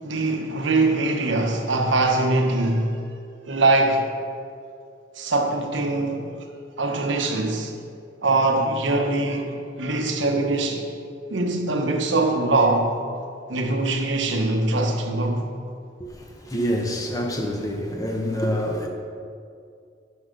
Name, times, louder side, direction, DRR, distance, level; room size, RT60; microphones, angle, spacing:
voice 1, 0.0-3.0 3.5-4.1 5.2-6.3 6.8-7.7 8.2-10.9 11.3-12.9 13.5-15.5, right 2 dB, 70° right, 3 dB, 1.0 m, -22 dB
voice 2, 16.5-18.9, equal, 15° left, 1 dB, 0.9 m, -26 dB
10.0 x 5.7 x 5.2 m, 2.4 s
head